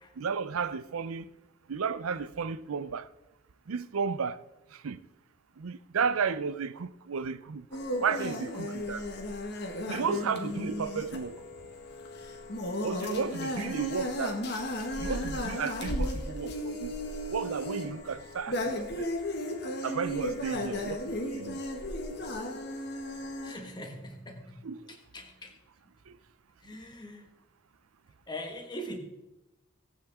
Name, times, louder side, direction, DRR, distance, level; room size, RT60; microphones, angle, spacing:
voice 1, 0.2-1.3 1.7-3.1 3.7-4.4 4.7-5.0 5.6-9.1 9.9-11.4 12.8-14.4 15.0-16.9 17.3-19.2 19.8-21.6 24.6-24.9 26.1-26.2, right 5 dB, 85° right, 0.5 m, -33 dB
sound 1, 7.7-23.5, left 1 dB, 50° left, 1.7 m, -35 dB
voice 2, 23.4-25.6 26.6-27.3 28.3-29.0, equal, 20° left, 1.5 m, -42 dB
17.5 x 9.2 x 3.6 m
head